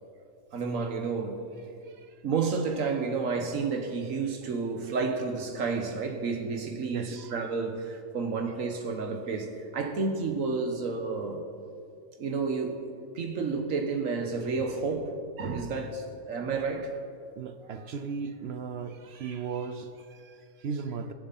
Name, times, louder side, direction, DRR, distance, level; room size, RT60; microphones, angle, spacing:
voice 1, 0.5-1.5 2.2-11.4 12.2-12.9 13.1-15.1 15.4-17.0, right 4 dB, 75° right, 5 dB, 1.6 m, -31 dB
voice 2, 1.8-2.2 6.9-7.4 17.4-21.1, right 5 dB, 60° right, 9 dB, 0.8 m, -37 dB
21.5 x 7.2 x 4.1 m, 2.4 s
omnidirectional pair, 1.4 m